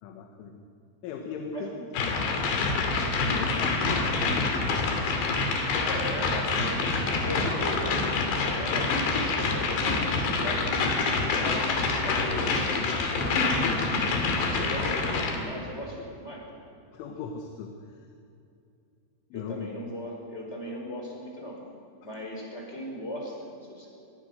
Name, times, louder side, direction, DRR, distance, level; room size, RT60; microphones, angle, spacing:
voice 1, 0.0-0.7 1.0-1.7 2.0-5.6 7.4-7.5 12.8-13.2 16.9-18.1 19.3-19.7, left 6 dB, 85° left, 4 dB, 3.9 m, -39 dB
voice 2, 1.5-1.8 5.8-6.9 7.2-8.1 8.4-10.9 11.3-16.5 19.3-21.6 22.0-23.9, equal, 15° left, -1 dB, 5.1 m, -38 dB
sound 1, 1.9-15.4, left 3 dB, 70° left, 4.6 m, -26 dB
26.0 x 21.0 x 6.6 m, 2.6 s
omnidirectional pair, 5.4 m